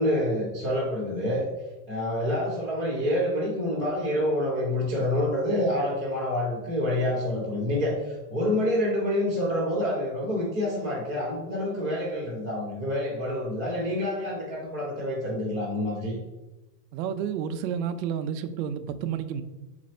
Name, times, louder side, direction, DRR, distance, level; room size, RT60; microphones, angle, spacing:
voice 1, 0.0-1.4 1.9-16.2, left 1 dB, 10° left, 0.4 m, -27 dB
voice 2, 16.9-19.4, right 8 dB, 85° right, 0.6 m, -30 dB
4.1 x 2.5 x 4.1 m
supercardioid pair, 175°, 50 cm